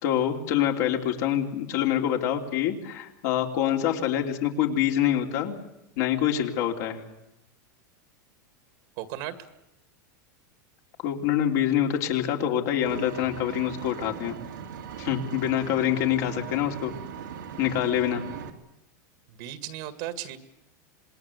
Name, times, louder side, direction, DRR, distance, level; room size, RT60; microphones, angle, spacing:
voice 1, 0.0-5.5 6.0-7.0 11.0-14.4 15.0-16.9 17.6-18.2, left 10 dB, 65° left, 2 dB, 3.2 m, -26 dB
voice 2, 9.0-9.4 19.3-20.4, right 13 dB, 60° right, 9 dB, 2.0 m, -35 dB
Vehicle, 12.8-18.5, right 8 dB, 90° right, 2.7 m, -39 dB
27.0 x 20.5 x 8.1 m, 0.89 s
supercardioid pair, 125°, 10 cm